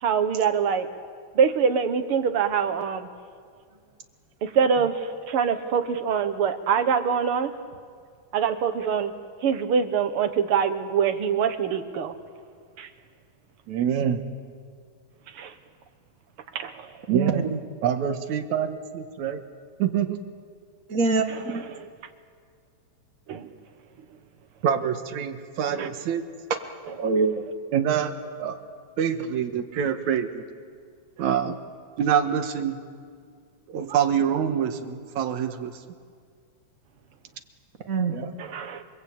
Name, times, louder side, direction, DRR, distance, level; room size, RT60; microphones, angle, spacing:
voice 1, 0.0-0.9 1.4-3.1 4.4-7.5 8.3-9.1 9.4-12.1 12.8-12.9 15.3-15.5 16.5-16.9 21.3-21.9 23.3-23.5 25.7-25.9 26.9-27.0 38.4-38.8, right 7 dB, 55° right, 8 dB, 1.9 m, -24 dB
voice 2, 13.7-14.2 17.1-17.5 17.8-19.4 19.8-20.2 24.6-26.2 27.7-28.1 28.4-28.6 29.0-30.4 31.2-31.6 32.0-32.8 33.7-35.7, right 8 dB, 70° right, 7 dB, 2.6 m, -25 dB
voice 3, 17.1-17.6 20.9-21.6 27.0-27.3 37.9-38.3, right 4 dB, 35° right, 5 dB, 1.6 m, -24 dB
28.0 x 22.5 x 8.8 m, 2.1 s
omnidirectional pair, 3.6 m